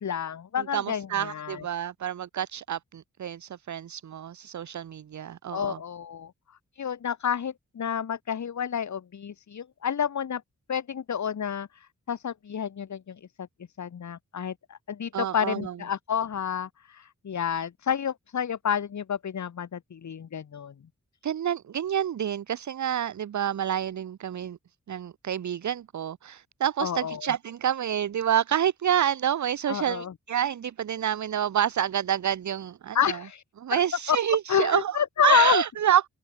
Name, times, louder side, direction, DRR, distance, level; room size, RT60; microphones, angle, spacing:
voice 1, 0.0-1.6 5.5-6.3 6.8-10.4 10.7-13.2 13.8-20.7 26.8-27.3 29.7-30.1 32.9-33.4 33.7-33.8 34.1-34.2 34.5-35.6, left 8 dB, 60° left, 1.2 m, -29 dB
voice 2, 0.6-5.8 15.1-15.7 21.2-24.6 24.9-33.2 33.6-35.0 35.2-36.0, right 10 dB, 65° right, 0.8 m, -28 dB
cardioid pair, 60°, 32 cm